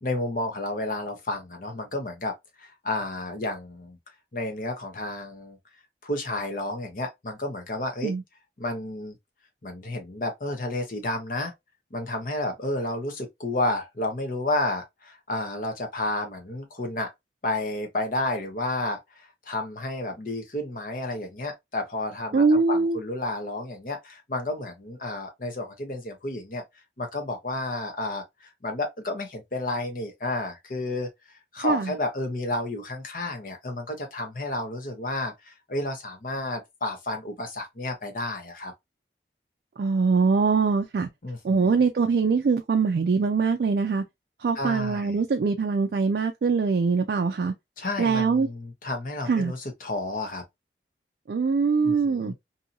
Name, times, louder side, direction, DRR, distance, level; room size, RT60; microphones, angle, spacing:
voice 1, 0.0-2.3 2.6-4.0 4.3-5.6 6.0-8.1 8.6-9.1 9.6-11.5 11.9-17.1 17.4-26.6 27.0-31.1 31.5-38.7 41.2-41.7 44.6-45.1 47.8-50.4 51.8-52.3, left 2 dB, 50° left, 0.8 m, -31 dB
voice 2, 22.3-23.0 31.6-31.9 39.8-41.1 41.4-44.0 44.4-47.5 48.0-48.5 49.3-49.5 51.3-52.3, right 4 dB, 60° right, 0.3 m, -23 dB
2.7 x 2.7 x 2.5 m
head